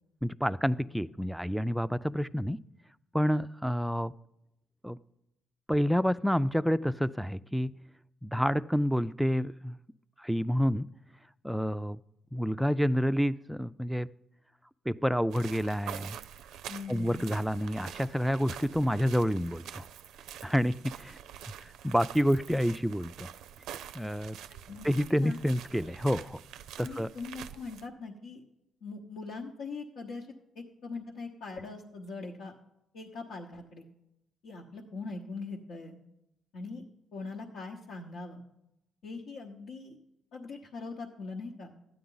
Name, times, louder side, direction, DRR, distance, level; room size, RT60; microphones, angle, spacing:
voice 1, 0.2-2.6 3.1-4.1 4.8-5.0 5.7-7.7 8.2-9.8 10.2-10.9 11.4-12.0 12.3-14.1 14.9-16.2 16.9-19.8 20.4-21.2 21.6-23.3 23.9-24.4 24.8-26.4 26.8-27.1, equal, ahead, 13 dB, 0.3 m, -28 dB
sound 1, 15.3-27.9, right 10 dB, 85° right, 0.4 m, -46 dB
voice 2, 16.7-17.3 24.5-24.9 25.2-25.4 26.8-28.4 28.8-30.3 30.5-32.5 32.9-33.9 34.4-36.0 36.5-36.8 37.1-38.4 39.0-40.0 40.3-41.7, left 3 dB, 80° left, -2 dB, 1.0 m, -41 dB
12.5 x 9.4 x 3.9 m, 0.86 s
cardioid pair, 90°, 0 cm